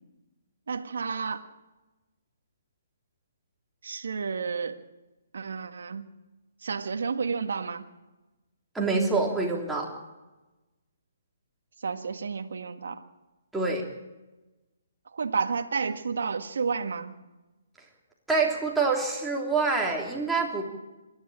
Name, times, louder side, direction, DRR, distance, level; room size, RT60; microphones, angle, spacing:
voice 1, 0.7-1.5 3.8-4.8 5.3-6.1 6.6-7.9 11.8-13.0 15.1-17.2, right 5 dB, 70° right, 6 dB, 1.7 m, -31 dB
voice 2, 8.7-9.9 13.5-13.8 18.3-20.6, right 4 dB, 5° right, -2 dB, 3.4 m, -26 dB
26.0 x 11.5 x 8.7 m, 1.1 s
hypercardioid pair, 150°, 0 cm